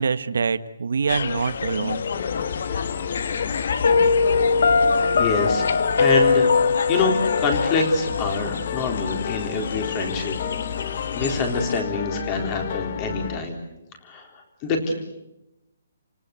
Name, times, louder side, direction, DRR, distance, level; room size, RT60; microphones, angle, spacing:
voice 1, 0.0-2.0, right 5 dB, 75° right, 13 dB, 1.3 m, -25 dB
sound 1, 1.1-11.8, left 6 dB, 55° left, 1.4 m, -30 dB
sound 2, 2.1-13.4, left 9 dB, 35° left, 0.9 m, -33 dB
Piano, 3.8-8.8, left 4 dB, 70° left, 1.3 m, -21 dB
voice 2, 5.2-5.7 6.0-6.5 6.9-10.4 10.9-13.6 14.0-14.3 14.6-14.9, left 3 dB, 20° left, 4 dB, 3.7 m, -25 dB
29.5 x 19.0 x 8.2 m, 0.91 s
hypercardioid pair, 175°, 0 cm